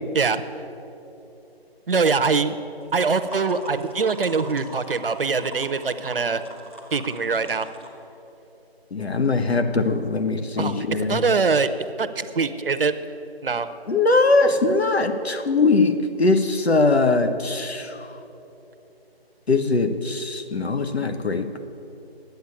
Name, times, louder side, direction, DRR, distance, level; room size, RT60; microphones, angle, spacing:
voice 1, 1.9-2.6 2.9-6.4 6.9-7.7 10.6-11.7 12.0-12.9 13.4-13.7, right 4 dB, 60° right, 11 dB, 0.7 m, -23 dB
sound 1, 2.8-7.9, right 1 dB, 15° left, 0.8 m, -42 dB
voice 2, 8.9-11.2 13.9-15.9 16.2-18.0 19.5-21.5, left 3 dB, 80° left, 8 dB, 1.2 m, -21 dB
10.5 x 8.3 x 8.5 m, 3.0 s
figure-of-eight pair, 165°, 31 cm